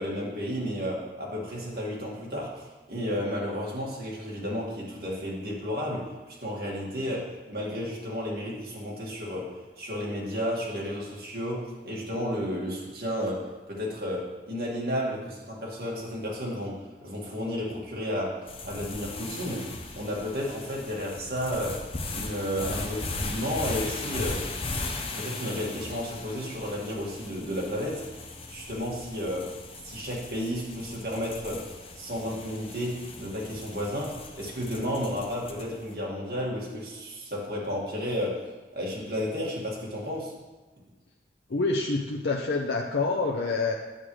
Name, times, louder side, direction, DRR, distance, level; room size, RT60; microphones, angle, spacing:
voice 1, 0.0-2.6 2.9-6.1 6.4-19.7 19.9-21.8 22.1-24.5 25.1-28.0 28.5-29.5 29.8-38.5 38.7-40.3, equal, 55° right, -4 dB, 2.1 m, -32 dB
sound 1, 18.5-35.8, left 3 dB, 30° left, 0.7 m, -38 dB
voice 2, 41.5-43.7, left 3 dB, 75° left, 0 dB, 0.6 m, -27 dB
9.0 x 7.5 x 3.3 m, 1.3 s
head